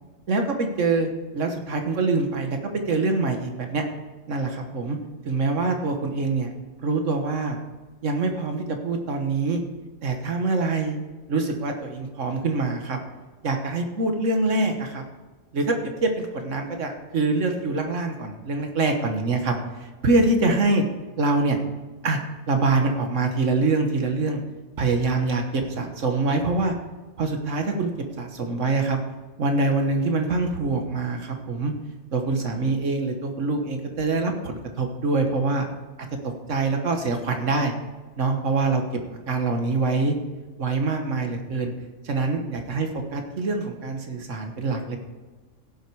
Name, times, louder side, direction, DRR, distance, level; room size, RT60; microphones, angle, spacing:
voice 1, 0.3-2.6 2.9-3.8 4.3-5.0 5.3-6.5 6.8-7.6 8.0-9.6 10.0-11.0 11.3-13.0 13.4-15.0 15.5-19.5 19.8-20.8 21.2-21.6 22.0-22.2 22.5-24.4 24.8-26.7 27.2-27.9 28.2-29.0 29.4-31.7 32.1-35.7 36.5-37.7 38.2-38.8 39.3-40.2 40.6-41.7 42.0-45.0, right 3 dB, 75° right, 4 dB, 1.7 m, -24 dB
16.5 x 7.7 x 4.8 m, 1.2 s
omnidirectional pair, 1.3 m